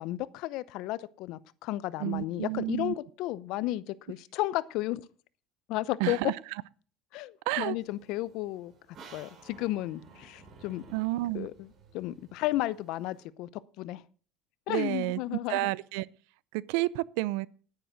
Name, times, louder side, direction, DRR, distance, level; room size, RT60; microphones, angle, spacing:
voice 1, 0.0-5.0 5.7-6.3 7.1-8.7 9.1-10.8 11.3-11.7 11.9-13.5 13.8-14.0 14.7-15.7, left 16 dB, 65° left, 0.7 m, -33 dB
voice 2, 2.0-2.9 6.0-6.3 7.5-7.8 10.9-11.5 14.7-16.1 16.5-17.5, right 20 dB, 80° right, 0.5 m, -30 dB
sound 1, 7.8-13.3, right 4 dB, 35° right, 3.0 m, -55 dB
10.5 x 9.7 x 6.2 m
cardioid pair, 145°, 0 cm